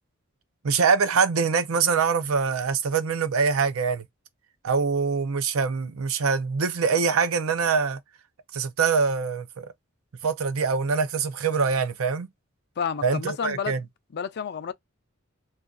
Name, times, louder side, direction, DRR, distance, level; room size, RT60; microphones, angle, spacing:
voice 1, 0.6-4.1 4.6-8.0 8.5-9.7 10.2-12.3 13.0-13.8, right 5 dB, 90° right, 0.6 m, -24 dB
voice 2, 12.8-13.8 14.1-14.7, left 7 dB, 55° left, 0.4 m, -30 dB
2.5 x 2.4 x 3.7 m
head